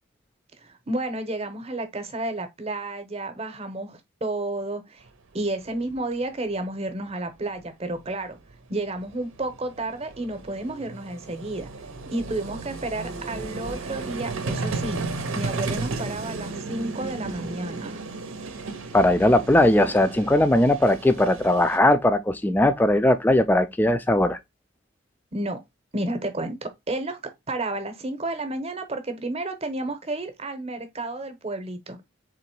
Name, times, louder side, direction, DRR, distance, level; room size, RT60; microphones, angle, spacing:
voice 1, 0.6-5.0 5.3-8.4 8.7-11.7 12.1-15.0 15.3-18.0 25.3-25.6 25.9-27.2 27.5-32.0, right 2 dB, 30° right, 0.8 m, -31 dB
Vehicle, 5.7-5.8 6.0-6.1 8.1-8.2 8.4-21.8, right 3 dB, 85° right, 0.8 m, -34 dB
voice 2, 18.9-24.4, left 1 dB, 10° left, 0.3 m, -19 dB
3.9 x 3.1 x 4.4 m
head